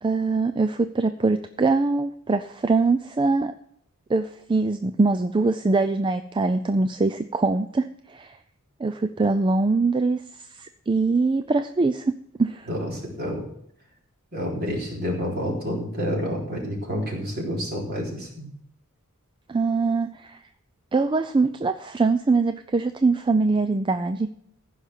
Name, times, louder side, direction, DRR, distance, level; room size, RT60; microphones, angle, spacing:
voice 1, 0.0-3.5 4.1-8.4 8.8-10.2 10.5-12.1 12.4-12.7 19.5-20.4 20.9-24.3, right 3 dB, 20° right, 10 dB, 0.4 m, -23 dB
voice 2, 12.7-13.5 14.3-18.5, equal, 45° right, -2 dB, 3.9 m, -29 dB
15.0 x 5.7 x 6.5 m, 0.70 s
head